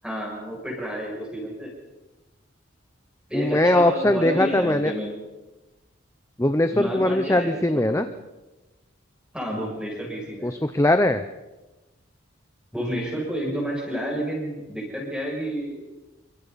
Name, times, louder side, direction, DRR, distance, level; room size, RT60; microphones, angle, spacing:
voice 1, 0.0-1.7 3.3-5.1 6.7-8.1 9.3-10.5 12.7-15.9, equal, 5° right, -3 dB, 7.0 m, -30 dB
voice 2, 3.3-4.9 6.4-8.1 10.4-11.2, left 1 dB, 15° left, 9 dB, 0.6 m, -21 dB
28.5 x 24.5 x 4.2 m, 1.1 s
head